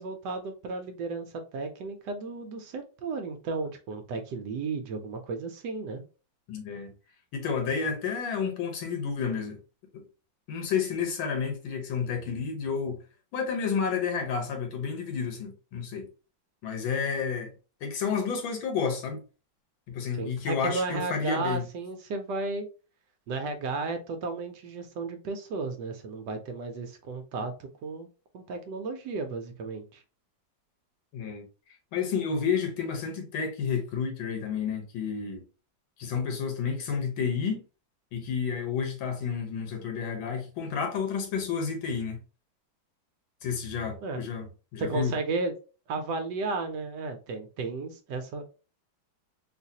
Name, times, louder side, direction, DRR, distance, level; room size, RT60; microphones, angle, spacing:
voice 1, 0.0-6.0 20.2-22.7 23.3-28.1 28.3-30.0 44.0-44.2 44.8-45.5 45.9-48.4, right 3 dB, 70° right, 1.1 m, -34 dB
voice 2, 6.5-6.9 7.3-9.6 9.9-10.0 10.5-13.0 13.3-16.1 16.6-17.5 17.8-19.2 19.9-21.6 31.1-31.5 31.9-35.4 36.0-37.6 38.1-42.2 43.4-44.5 44.7-45.1, left 6 dB, 90° left, 1.7 m, -30 dB
3.9 x 2.5 x 2.7 m
omnidirectional pair, 2.1 m